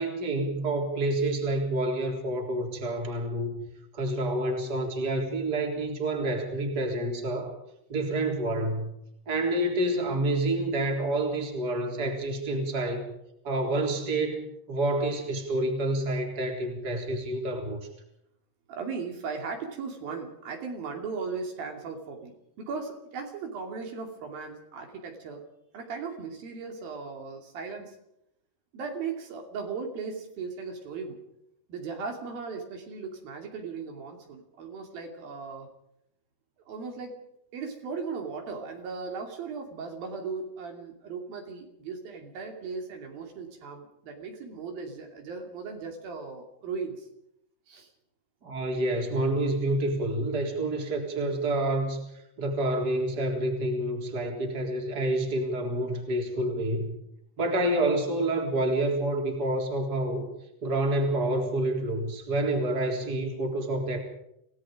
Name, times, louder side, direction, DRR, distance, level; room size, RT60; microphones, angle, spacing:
voice 1, 0.0-3.6 3.9-7.5 7.9-8.9 9.3-13.0 13.4-17.9 48.4-52.0 52.4-56.9 57.4-60.3 60.6-64.0, right 1 dB, 25° right, 2 dB, 4.0 m, -28 dB
voice 2, 18.7-25.4 25.7-27.9 28.7-31.2 31.7-35.7 36.7-37.2 37.5-47.1 47.7-47.9, right 5 dB, 70° right, 3 dB, 4.3 m, -37 dB
28.0 x 18.0 x 5.1 m, 0.79 s
omnidirectional pair, 4.5 m